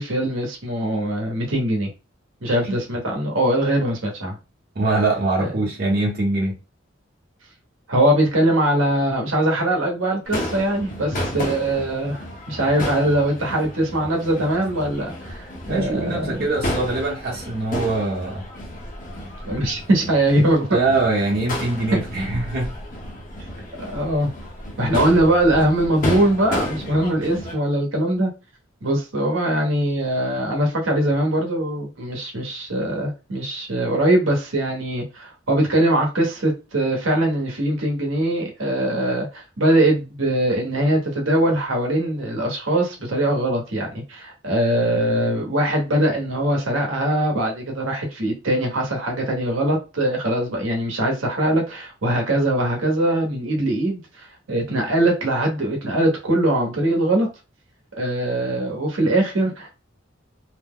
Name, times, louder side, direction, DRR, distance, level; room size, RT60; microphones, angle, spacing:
voice 1, 0.0-1.9 2.4-4.4 5.4-5.5 7.9-16.4 19.4-20.7 21.9-22.0 23.8-24.3 24.8-28.3 28.8-57.3 57.9-59.7, right 1 dB, 85° right, 1.0 m, -21 dB
voice 2, 4.7-6.6 15.7-18.4 20.7-22.7, right 2 dB, 50° right, 0.9 m, -23 dB
Crowd / Fireworks, 10.3-27.5, left 1 dB, 45° left, 1.0 m, -32 dB
2.8 x 2.1 x 3.6 m
head